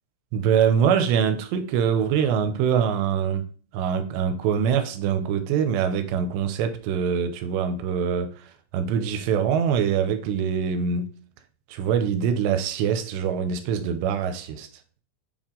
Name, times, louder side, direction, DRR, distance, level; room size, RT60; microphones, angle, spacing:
voice 1, 0.3-3.5 3.7-11.1 11.7-14.7, right 7 dB, 85° right, 2.9 m, -24 dB
7.6 x 4.5 x 3.7 m
omnidirectional pair, 4.9 m